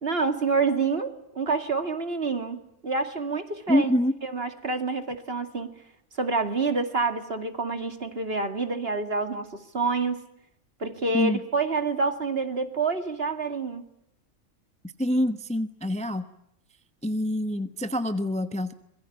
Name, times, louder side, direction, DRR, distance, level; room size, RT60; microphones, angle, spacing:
voice 1, 0.0-3.9 4.2-5.7 6.2-9.5 9.7-10.2 10.8-13.8, right 4 dB, 45° right, 7 dB, 2.6 m, -27 dB
voice 2, 3.7-4.2 11.1-11.4 15.0-16.3 17.0-18.7, left 1 dB, 5° left, 9 dB, 0.9 m, -25 dB
25.5 x 22.5 x 8.6 m, 0.78 s
omnidirectional pair, 1.4 m